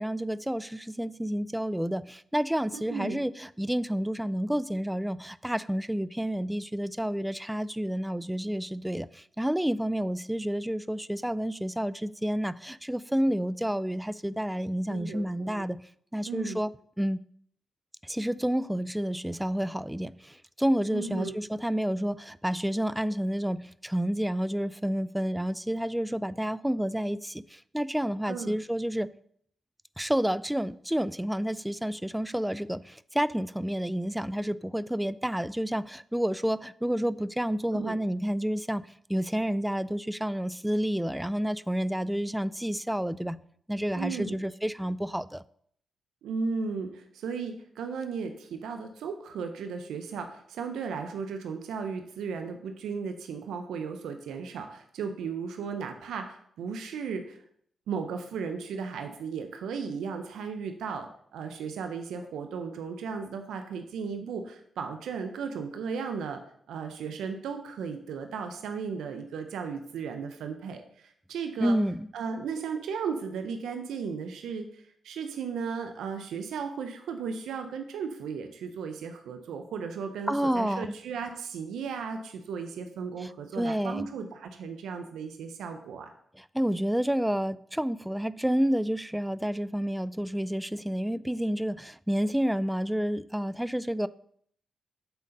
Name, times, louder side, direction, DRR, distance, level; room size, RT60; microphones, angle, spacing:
voice 1, 0.0-15.8 16.1-16.7 17.0-17.2 18.0-29.1 30.0-38.8 39.1-43.4 43.7-45.4 71.6-72.1 80.3-81.0 83.2-83.3 83.6-84.1 86.3-94.1, equal, 5° right, 0.3 m, -29 dB
voice 2, 2.7-3.2 14.9-15.7 16.3-16.6 20.9-21.4 28.3-28.6 37.7-37.9 43.9-44.4 46.2-57.4 57.9-66.4 66.7-71.8 72.1-86.1, right 5 dB, 90° right, 0.7 m, -35 dB
8.1 x 3.9 x 5.2 m
supercardioid pair, 55°, 0 cm